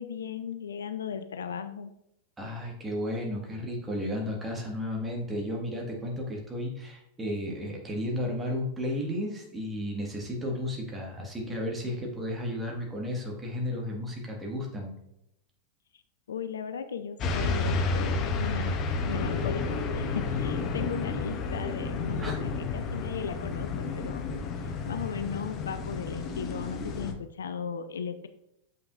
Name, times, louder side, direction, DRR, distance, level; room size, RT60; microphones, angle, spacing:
voice 1, 0.0-1.9 15.9-16.0 16.3-18.8 19.0-24.3 24.8-28.3, left 7 dB, 65° left, 10 dB, 0.4 m, -36 dB
voice 2, 2.4-15.0 22.2-22.4, left 1 dB, 15° right, -1 dB, 1.6 m, -33 dB
sound 1, 17.2-27.1, left 4 dB, 35° left, 0.7 m, -31 dB
7.1 x 5.7 x 2.4 m, 0.81 s
figure-of-eight pair, 90°, 0 cm